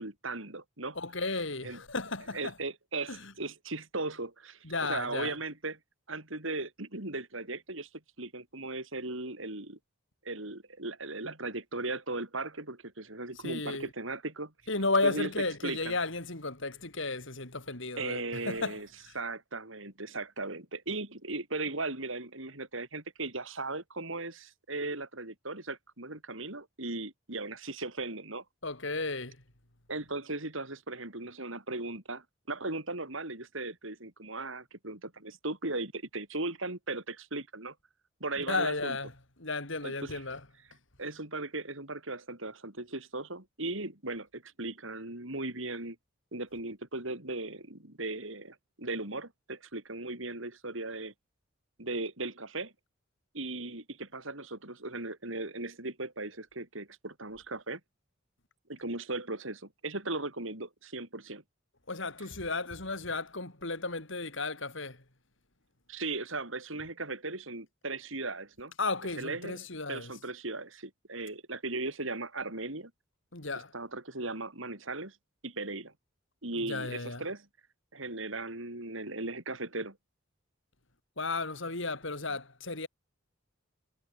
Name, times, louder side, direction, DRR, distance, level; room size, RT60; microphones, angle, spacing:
voice 1, 0.0-1.0 1.6-1.8 2.3-5.8 6.1-7.9 8.2-9.8 10.2-14.5 15.0-15.3 15.6-15.9 18.0-18.9 19.1-28.4 29.9-37.7 38.2-39.0 39.8-40.2 41.0-46.0 46.3-51.1 51.8-52.7 53.3-57.8 58.7-61.4 65.9-68.7 69.2-69.6 69.9-72.9 73.7-75.2 75.4-75.9 76.4-77.4 77.9-80.0, right 2 dB, 70° right, 5.1 m, -37 dB
voice 2, 0.9-2.5 3.1-3.3 4.6-5.4 13.3-13.9 14.7-19.1 28.6-29.4 38.4-39.1 39.4-40.5 61.9-65.0 68.8-70.1 73.3-73.7 76.5-77.3 81.2-82.9, left 3 dB, 65° left, 4.4 m, -34 dB
head